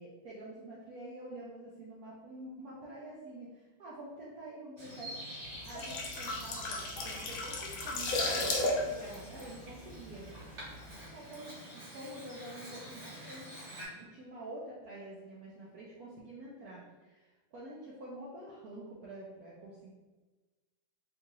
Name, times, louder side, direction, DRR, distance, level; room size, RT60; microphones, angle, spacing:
voice 1, 0.0-10.3 11.1-13.5 13.9-19.9, right 1 dB, 75° right, -6 dB, 0.8 m, -47 dB
Bird vocalization bird call bird song, 4.8-13.9, right 1 dB, 30° right, 0.8 m, -48 dB
sound 1, 5.5-10.3 10.6-10.9, left 2 dB, 85° left, 0.8 m, -34 dB
3.8 x 2.3 x 2.9 m, 1.2 s
omnidirectional pair, 2.2 m